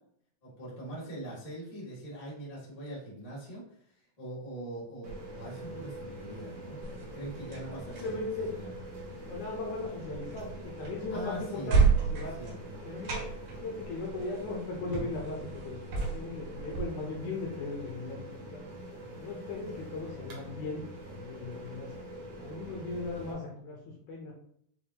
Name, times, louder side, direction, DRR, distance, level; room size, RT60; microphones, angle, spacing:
voice 1, 0.4-3.6 4.2-8.1 8.5-8.7 11.1-11.8 12.3-12.8 19.0-19.2, right 1 dB, 90° left, -7 dB, 0.3 m, -42 dB
sound 1, 5.0-23.3, right 1 dB, 60° right, 1.5 m, -44 dB
sound 2, 6.8-16.8, right 5 dB, 80° right, 3.3 m, -33 dB
voice 2, 7.7-8.5 9.2-11.8 12.1-12.4 12.9-18.6 19.2-20.8 21.1-21.9 22.4-23.8 24.1-24.3, left 3 dB, 75° left, -1 dB, 1.8 m, -38 dB
7.2 x 2.6 x 2.9 m, 0.67 s
omnidirectional pair, 4.2 m